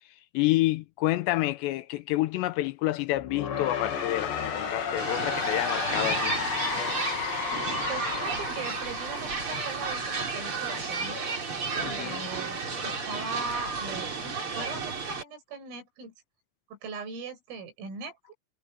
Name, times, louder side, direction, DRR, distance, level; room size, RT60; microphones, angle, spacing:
voice 1, 0.3-6.4 11.8-12.3, left 17 dB, 85° left, 2.5 m, -28 dB
sound 1, 3.2-10.1, left 7 dB, 60° left, 5.4 m, -33 dB
sound 2, 5.0-15.2, right 4 dB, 30° right, 3.8 m, -32 dB
voice 2, 7.9-11.2 11.8-16.1 16.7-18.3, right 4 dB, 90° right, 9.0 m, -39 dB
omnidirectional pair, 5.7 m